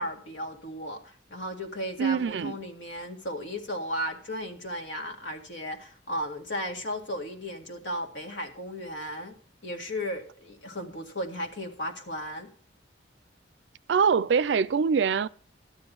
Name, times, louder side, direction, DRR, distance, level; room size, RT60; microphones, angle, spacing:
voice 1, 0.0-9.3 9.6-12.5, equal, 75° left, 1.9 m, -35 dB
voice 2, 2.0-2.6 13.9-15.3, right 6 dB, 70° right, 0.4 m, -24 dB
12.5 x 9.7 x 3.9 m
head